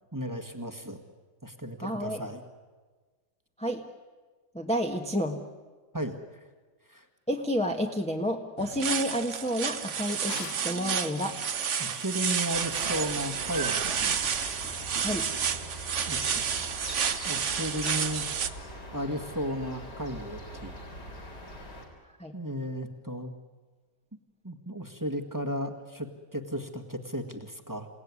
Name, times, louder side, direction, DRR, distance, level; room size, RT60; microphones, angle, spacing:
voice 1, 0.1-1.0 1.4-2.4 5.9-6.1 6.9-7.1 11.8-14.1 16.1-16.5 17.2-18.2 18.9-20.7 22.3-23.3 24.4-27.9, equal, 10° right, 6 dB, 1.6 m, -34 dB
voice 2, 1.8-2.2 3.6-3.8 4.5-5.4 7.3-11.3 15.0-15.3 22.2-22.3, equal, 5° left, 2 dB, 1.3 m, -30 dB
sound 1, 8.6-18.5, right 7 dB, 50° right, 1.2 m, -30 dB
Drawer open or close, 9.6-10.8 13.4-14.4, left 7 dB, 55° left, 1.5 m, -45 dB
sound 2, 12.5-21.9, equal, 75° left, 4.4 m, -42 dB
28.5 x 17.5 x 9.7 m, 1.4 s
omnidirectional pair, 1.8 m